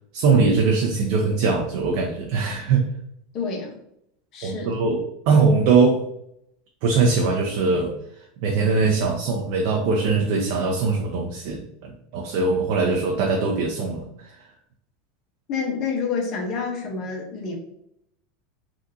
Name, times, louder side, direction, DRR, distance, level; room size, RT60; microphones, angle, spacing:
voice 1, 0.1-2.8 4.4-6.0 6.8-7.9 8.4-14.1, right 4 dB, 65° right, 1 dB, 0.5 m, -21 dB
voice 2, 3.3-3.8 4.3-4.8 15.5-17.6, left 5 dB, 50° left, 1 dB, 0.9 m, -28 dB
3.6 x 2.5 x 2.7 m, 0.76 s
hypercardioid pair, 105°, 0 cm